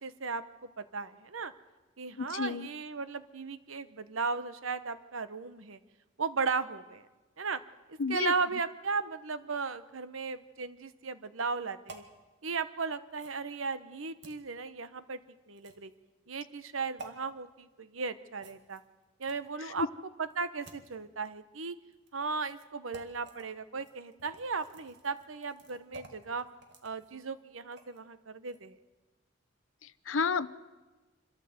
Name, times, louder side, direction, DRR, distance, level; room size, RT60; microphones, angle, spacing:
voice 1, 0.0-1.5 2.0-5.8 6.2-7.1 7.4-7.6 7.9-12.0 12.4-15.2 15.5-15.9 16.3-18.8 19.2-19.9 20.2-21.7 22.1-26.4 26.8-28.8, right 4 dB, 90° right, 13 dB, 1.0 m, -36 dB
voice 2, 2.2-2.7 8.0-8.3 19.6-19.9 29.8-30.5, left 5 dB, 75° left, 16 dB, 0.7 m, -31 dB
sound 1, 11.9-12.1 13.1-13.4 14.2-14.4 15.6-15.9 17.0-17.1 18.4-19.6 20.2-20.9 21.9-22.1 22.5-22.6 22.9-23.4 23.8-28.0 28.4-28.6, right 3 dB, 60° right, 2.1 m, -52 dB
26.0 x 13.0 x 7.9 m, 1.2 s
head